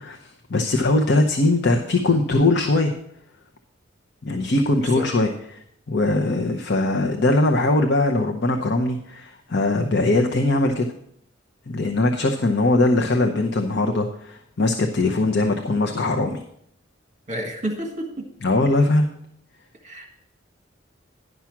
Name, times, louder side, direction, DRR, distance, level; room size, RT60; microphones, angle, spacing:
voice 1, 0.0-2.9 4.2-5.6 5.9-10.9 11.7-16.4 18.4-19.1, left 2 dB, 60° left, 3 dB, 0.8 m, -21 dB
voice 2, 17.3-18.2 19.8-20.1, right 1 dB, 40° right, 2 dB, 1.6 m, -30 dB
11.0 x 5.9 x 6.0 m, 0.70 s
head